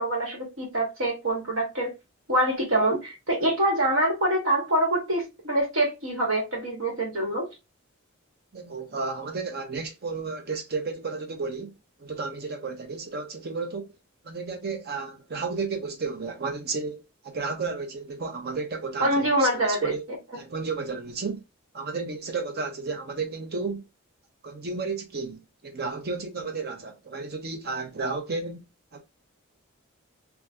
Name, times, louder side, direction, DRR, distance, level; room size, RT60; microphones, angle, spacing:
voice 1, 0.0-1.9 2.3-7.5 19.0-19.9, right 1 dB, 65° right, 1.3 m, -25 dB
voice 2, 8.5-11.7 12.0-13.9 14.2-20.0 20.3-21.4 21.7-23.8 24.4-28.6 28.9-29.0, right 4 dB, 45° right, 0.7 m, -32 dB
2.6 x 2.3 x 3.4 m
head